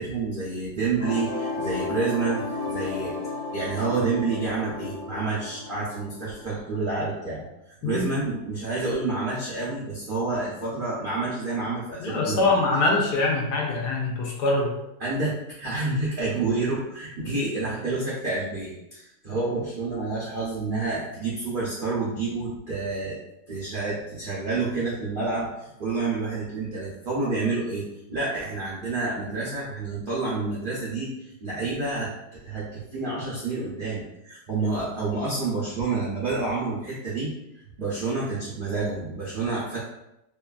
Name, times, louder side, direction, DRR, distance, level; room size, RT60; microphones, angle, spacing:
voice 1, 0.0-3.2 3.5-12.6 15.0-23.2 23.5-32.1 32.4-37.3 37.8-39.8, right 3 dB, 75° right, -7 dB, 0.4 m, -29 dB
sound 1, 1.0-6.8, left 3 dB, 25° left, 1.0 m, -33 dB
voice 2, 12.0-14.7, left 2 dB, 80° left, -1 dB, 1.2 m, -23 dB
3.0 x 2.2 x 2.4 m, 0.87 s
omnidirectional pair, 1.8 m